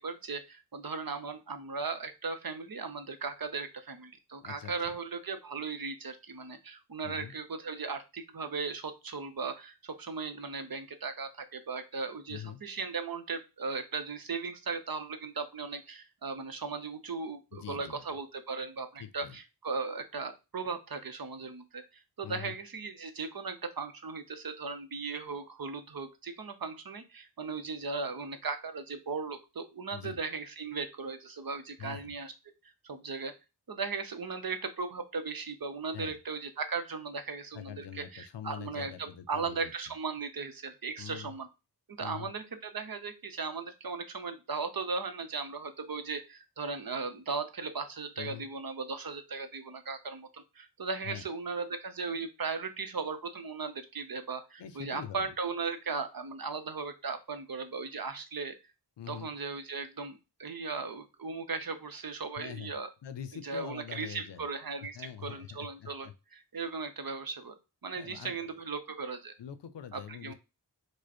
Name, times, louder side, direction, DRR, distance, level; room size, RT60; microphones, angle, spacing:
voice 1, 0.0-21.8 22.2-32.3 32.8-33.3 33.7-41.5 41.9-58.5 59.1-62.9 63.4-67.5 67.8-69.3 69.9-70.3, right 4 dB, 55° right, 8 dB, 0.8 m, -37 dB
voice 2, 4.4-4.9 7.0-7.3 12.3-12.6 17.5-18.0 19.0-19.4 22.2-22.6 29.9-30.2 31.8-32.2 35.9-36.2 37.5-39.7 41.0-41.3 42.0-42.3 48.2-48.5 51.0-51.2 54.6-55.3 59.0-59.3 62.4-62.7 63.0-64.5 64.9-66.1 66.5-66.7 68.0-68.5 69.4-70.3, left 9 dB, 80° left, 12 dB, 0.6 m, -44 dB
4.9 x 2.1 x 4.2 m, 0.27 s
wide cardioid pair, 60°, 42 cm